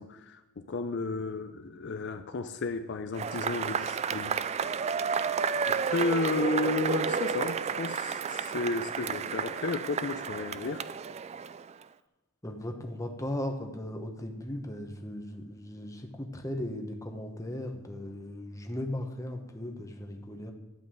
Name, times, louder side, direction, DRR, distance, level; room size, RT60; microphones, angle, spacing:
voice 1, 0.0-5.0 5.7-10.8, left 3 dB, 60° left, 9 dB, 0.5 m, -33 dB
Cheering / Applause / Crowd, 3.1-11.8, right 6 dB, 30° right, 0.3 m, -31 dB
voice 2, 12.4-20.5, left 1 dB, 15° left, 4 dB, 1.1 m, -37 dB
11.0 x 5.4 x 7.7 m, 1.1 s
head